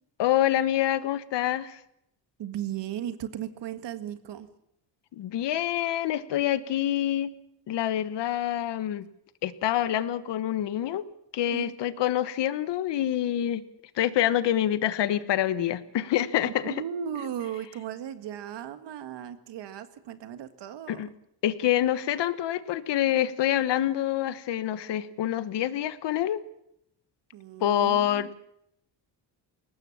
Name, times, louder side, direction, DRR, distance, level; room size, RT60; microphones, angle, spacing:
voice 1, 0.2-1.8 5.1-7.3 7.7-9.1 9.4-11.0 11.3-13.6 14.0-16.7 20.9-21.1 21.4-26.4 27.6-28.3, left 11 dB, 75° left, 14 dB, 1.3 m, -26 dB
voice 2, 2.4-4.5 11.5-11.7 16.5-21.1 27.3-28.3, right 9 dB, 75° right, 10 dB, 1.8 m, -36 dB
21.5 x 19.0 x 7.2 m, 0.77 s
cardioid pair, 115°, 43 cm